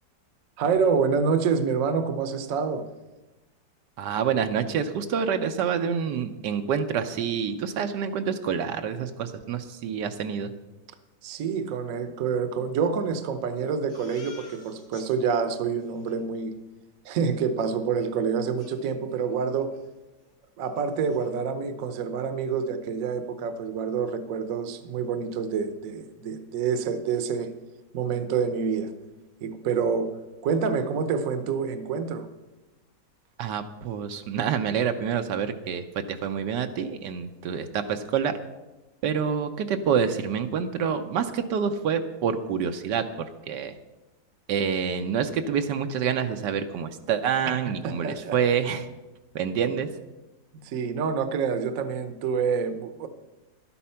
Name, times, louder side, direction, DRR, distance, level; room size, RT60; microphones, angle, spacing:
voice 1, 0.6-2.8 11.2-16.5 17.0-19.7 20.6-27.5 27.9-28.9 29.4-30.1 30.4-32.3 47.8-48.4 50.6-53.1, right 6 dB, 60° right, 10 dB, 1.1 m, -27 dB
voice 2, 4.0-10.5 33.4-38.3 39.0-43.0 43.5-43.7 44.5-48.9 49.3-49.9, right 7 dB, 80° right, 7 dB, 1.3 m, -27 dB
Crying sobbing, 13.9-15.1 15.5-15.6 15.8-16.2 18.0-18.1 18.6-19.4 19.7-19.9 20.2-20.3 20.7-21.3, left 3 dB, 60° left, 2.7 m, -51 dB
12.0 x 8.6 x 5.6 m, 1.1 s
omnidirectional pair, 1.9 m